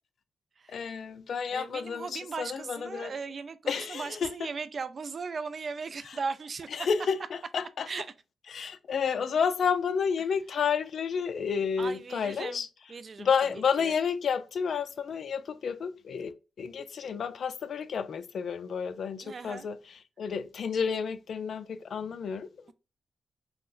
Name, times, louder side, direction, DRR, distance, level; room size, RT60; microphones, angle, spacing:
voice 1, 0.7-3.1 3.7-4.5 6.0-6.2 6.7-7.9 8.5-12.7 13.2-22.7, left 6 dB, 65° left, 0.4 m, -31 dB
voice 2, 1.5-6.7 7.9-8.1 11.8-12.6 12.9-13.3 13.8-13.9 19.2-19.7, right 5 dB, 50° right, 0.4 m, -37 dB
5.5 x 2.1 x 2.5 m
cardioid pair, 75°, 0 cm